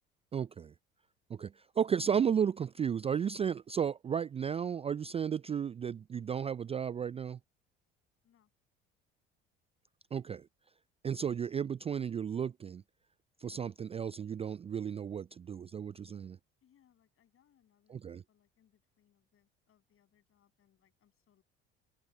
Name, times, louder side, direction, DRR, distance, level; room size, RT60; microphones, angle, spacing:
voice 1, 0.3-0.7 1.3-7.4 10.1-10.5 11.0-12.8 13.4-16.4 17.9-18.2, right 7 dB, 20° right, 0.4 m, -34 dB
voice 2, 16.6-21.4, left 10 dB, 45° left, 7.7 m, -71 dB
figure-of-eight pair, 60°, 31 cm